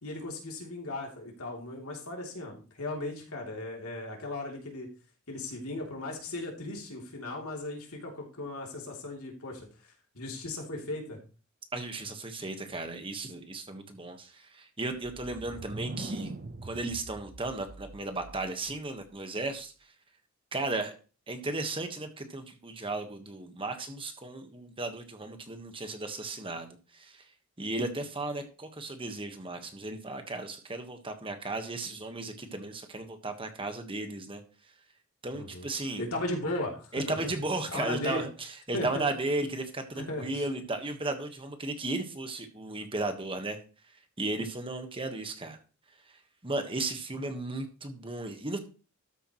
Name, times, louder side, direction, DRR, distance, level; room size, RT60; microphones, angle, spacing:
voice 1, 0.0-4.9 5.3-11.2 35.3-35.7 36.0-37.3 37.7-38.3 38.7-39.0 39.9-40.4, left 2 dB, 90° left, 0 dB, 3.1 m, -37 dB
voice 2, 11.7-16.3 16.6-19.9 20.5-20.9 21.3-27.3 27.6-34.4 35.2-36.0 36.9-43.6 44.2-45.6 46.0-48.6, right 2 dB, 25° right, 7 dB, 1.4 m, -35 dB
sound 1, 15.0-18.7, right 2 dB, 45° right, 0.9 m, -42 dB
13.0 x 8.2 x 3.1 m, 0.35 s
head